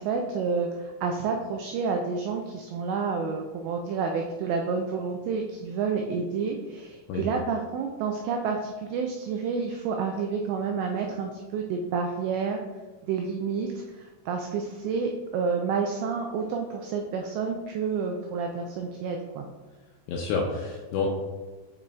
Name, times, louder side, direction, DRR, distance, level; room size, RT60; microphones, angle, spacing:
voice 1, 0.0-12.6 13.1-13.7 14.0-19.5, right 5 dB, 85° right, 2 dB, 2.5 m, -29 dB
voice 2, 20.1-21.1, left 4 dB, 85° left, -1 dB, 2.5 m, -28 dB
8.8 x 4.6 x 2.3 m, 1.3 s
omnidirectional pair, 5.6 m